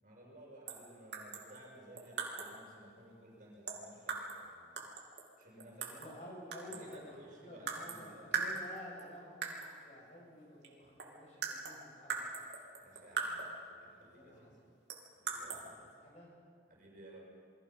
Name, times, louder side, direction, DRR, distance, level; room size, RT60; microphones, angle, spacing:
voice 1, 0.0-4.9 5.4-5.9 6.7-8.3 12.8-14.5 15.2-15.7 16.7-17.2, right 1 dB, 50° right, -3 dB, 7.0 m, -56 dB
sound 1, 0.7-0.9 1.1-2.6 3.7-4.5 4.8-6.2 6.5-7.1 7.7-8.0 8.3-9.0 9.4-9.8 10.6-10.7 11.0-13.6 14.9-15.6, right 4 dB, 90° right, 3.4 m, -40 dB
voice 2, 5.8-12.5 14.0-14.6 15.3-16.3, left 1 dB, 40° left, -3 dB, 7.6 m, -52 dB
28.5 x 23.0 x 5.9 m, 2.1 s
head